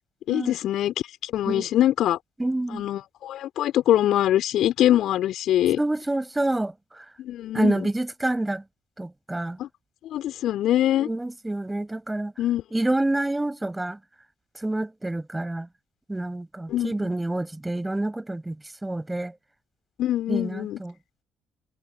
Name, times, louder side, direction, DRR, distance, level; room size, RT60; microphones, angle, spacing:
voice 1, 0.3-0.9 1.2-2.2 2.7-5.8 7.2-7.9 9.6-9.7 10.0-11.1 12.4-12.6 16.7-17.1 20.0-20.8, left 12 dB, 55° left, 4.2 m, -23 dB
voice 2, 2.4-2.8 5.8-6.7 7.5-8.6 9.0-9.6 11.0-12.3 12.7-14.0 14.6-15.7 16.1-18.6 18.8-19.3 20.3-20.9, right 2 dB, 10° right, 7.9 m, -27 dB
figure-of-eight pair, 45°, 0 cm